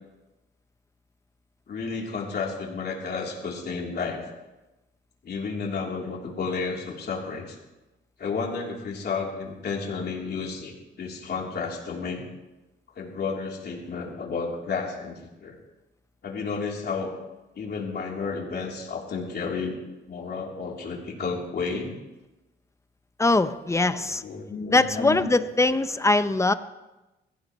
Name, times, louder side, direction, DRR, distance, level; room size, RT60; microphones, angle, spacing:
voice 1, 1.7-4.2 5.2-7.6 8.2-12.2 13.0-15.6 16.2-17.1 17.5-19.8 20.1-22.0 23.9-25.4, left 4 dB, 55° left, -1 dB, 3.4 m, -32 dB
voice 2, 23.2-24.2 24.7-26.5, left 2 dB, 15° left, 12 dB, 0.7 m, -22 dB
22.0 x 15.5 x 3.1 m, 1.0 s
cardioid pair, 95°, 20 cm